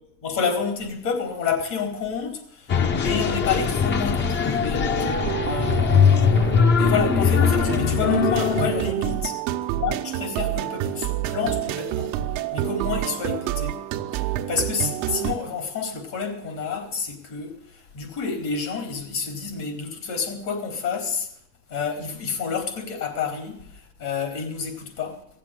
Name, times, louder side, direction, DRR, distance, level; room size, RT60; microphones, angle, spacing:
voice 1, 0.2-9.3 9.8-12.2 12.5-13.8 14.1-21.3 21.7-25.2, left 5 dB, 65° left, 4.0 m, -29 dB
sound 1, 2.7-8.9, left 6 dB, 35° left, 1.1 m, -21 dB
sound 2, 4.7-15.3, right 12 dB, 70° right, 1.0 m, -29 dB
16.5 x 7.5 x 9.9 m
cardioid pair, 130°, 30 cm